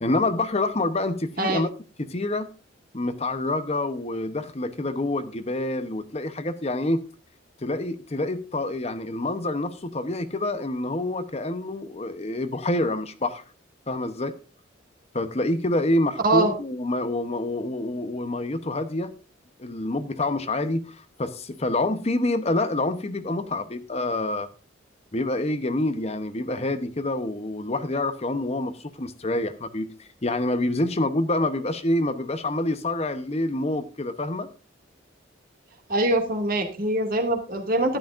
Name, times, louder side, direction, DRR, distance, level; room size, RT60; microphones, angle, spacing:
voice 1, 0.0-1.7 2.1-2.5 2.9-7.0 7.6-13.4 13.9-14.3 15.1-19.1 19.6-24.5 25.1-29.9 30.2-34.5, left 2 dB, 30° left, 0.8 m, -27 dB
voice 2, 16.2-16.6 35.9-38.0, right 1 dB, 45° right, 2.3 m, -23 dB
13.0 x 11.5 x 2.5 m
head